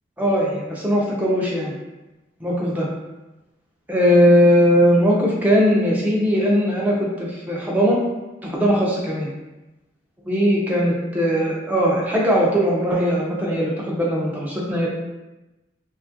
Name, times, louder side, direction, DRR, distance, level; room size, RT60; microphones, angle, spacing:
voice 1, 0.2-1.7 2.4-2.9 3.9-8.0 8.4-9.3 10.2-14.9, equal, 10° right, -4 dB, 0.4 m, -19 dB
2.8 x 2.3 x 2.6 m, 1.0 s
head